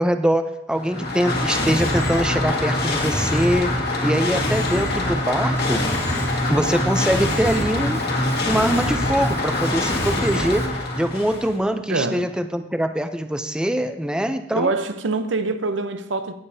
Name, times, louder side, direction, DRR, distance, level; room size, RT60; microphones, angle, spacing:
voice 1, 0.0-3.7 4.0-5.8 6.5-8.1 8.4-14.7, equal, 5° right, 0.5 m, -23 dB
sound 1, 0.7-11.6, left 1 dB, 60° left, 1.8 m, -24 dB
Drum kit, 5.5-10.7, left 1 dB, 15° left, 0.9 m, -33 dB
voice 2, 11.9-12.3 14.5-16.3, right 3 dB, 85° right, 0.7 m, -24 dB
17.0 x 7.3 x 2.7 m
head